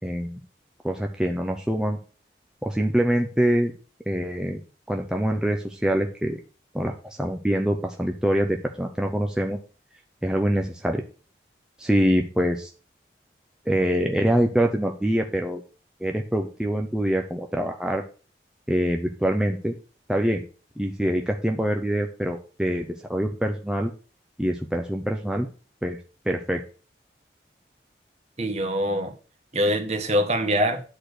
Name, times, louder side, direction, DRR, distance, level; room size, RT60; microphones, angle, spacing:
voice 1, 0.0-0.4 0.8-2.0 2.6-3.7 4.1-4.6 4.9-6.4 6.7-9.6 10.2-11.0 11.8-12.7 13.7-15.6 16.0-18.0 18.7-19.7 20.1-20.4 20.8-23.9 24.4-25.5 25.8-26.0 26.3-26.6, equal, 5° right, 2 dB, 0.7 m, -24 dB
voice 2, 28.4-29.1 29.5-30.8, equal, 35° right, 6 dB, 1.3 m, -24 dB
10.0 x 4.4 x 6.5 m, 0.36 s
head